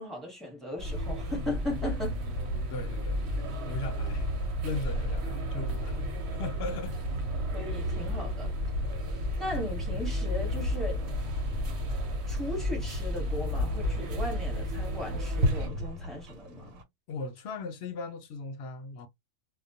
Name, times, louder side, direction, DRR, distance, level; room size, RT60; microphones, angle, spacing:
voice 1, 0.0-2.2 7.5-8.5 9.4-11.1 12.3-16.8, left 1 dB, ahead, 0.9 m, -37 dB
sound 1, 0.8-15.7, equal, 60° right, 0.9 m, -32 dB
sound 2, 1.3-16.8, left 1 dB, 85° right, 1.2 m, -41 dB
voice 2, 2.7-4.3 4.6-7.0 17.1-19.1, left 3 dB, 60° left, 0.8 m, -38 dB
2.2 x 2.2 x 2.7 m
omnidirectional pair, 1.4 m